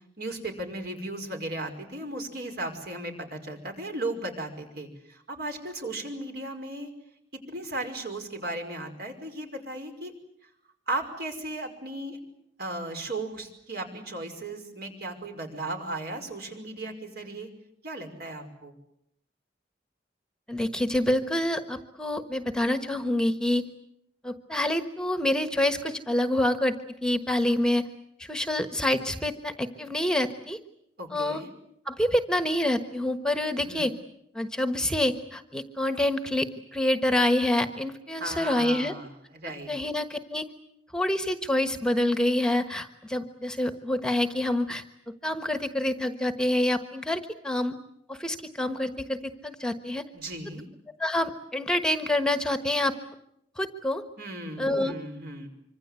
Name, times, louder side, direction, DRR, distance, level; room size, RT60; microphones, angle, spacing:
voice 1, 0.2-6.9 7.5-10.1 10.9-12.2 12.6-17.5 17.8-18.7 31.0-31.5 33.6-33.9 38.2-39.7 50.1-50.6 54.2-55.5, right 2 dB, 60° right, 5 dB, 5.5 m, -36 dB
voice 2, 20.5-23.6 24.2-26.8 27.0-27.8 28.2-30.6 31.1-31.4 31.9-33.9 34.3-36.5 36.7-38.9 39.7-40.4 40.9-44.8 45.2-47.8 48.1-49.2 49.4-50.0 51.0-52.9 53.6-54.0 54.6-54.9, left 1 dB, 5° left, 9 dB, 1.3 m, -27 dB
25.5 x 25.5 x 8.2 m, 0.75 s
head